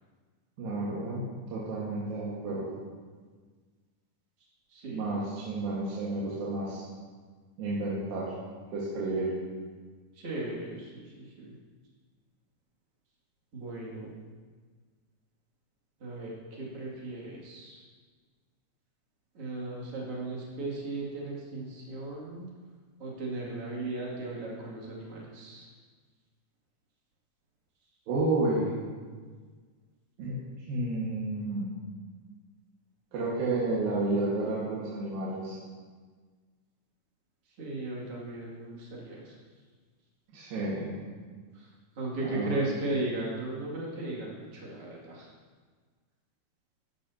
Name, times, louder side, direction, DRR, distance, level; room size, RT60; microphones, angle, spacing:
voice 1, 0.6-2.8 4.9-6.8 7.6-8.3 8.7-9.3 28.1-28.7 30.2-31.7 33.1-35.6 40.3-41.0 42.2-42.6, right 2 dB, 90° right, -7 dB, 3.5 m, -31 dB
voice 2, 4.7-5.1 10.1-11.5 13.5-14.1 16.0-17.8 19.3-22.5 23.0-25.7 37.6-39.4 41.5-41.7 41.9-45.3, right 2 dB, 45° right, -5 dB, 3.1 m, -36 dB
14.0 x 11.5 x 2.8 m, 1.5 s
omnidirectional pair, 3.9 m